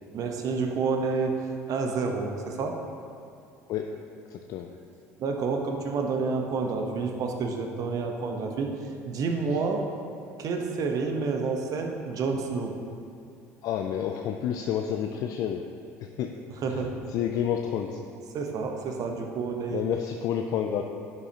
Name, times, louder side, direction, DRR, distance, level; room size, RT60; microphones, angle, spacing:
voice 1, 0.1-2.8 5.2-8.7 9.0-9.9 10.4-12.8 16.6-17.0 18.3-19.8, right 4 dB, 50° right, 3 dB, 1.1 m, -29 dB
voice 2, 3.7-4.0 4.3-4.7 13.6-15.6 16.0-16.3 17.1-18.0 19.7-20.8, left 9 dB, 55° left, 4 dB, 0.5 m, -29 dB
11.0 x 7.6 x 2.9 m, 2.5 s
hypercardioid pair, 65°, 8 cm